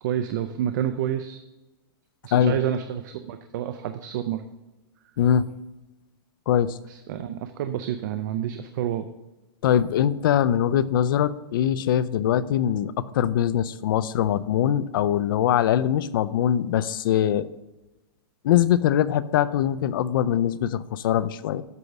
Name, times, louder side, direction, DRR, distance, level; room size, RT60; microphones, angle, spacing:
voice 1, 0.0-1.4 2.2-4.4 6.9-9.1, right 10 dB, 50° right, 9 dB, 0.5 m, -29 dB
voice 2, 5.2-5.5 6.5-6.8 9.6-17.5 18.4-21.6, left 10 dB, 60° left, 15 dB, 0.4 m, -22 dB
8.3 x 5.3 x 5.9 m, 1.0 s
supercardioid pair, 165°, 13 cm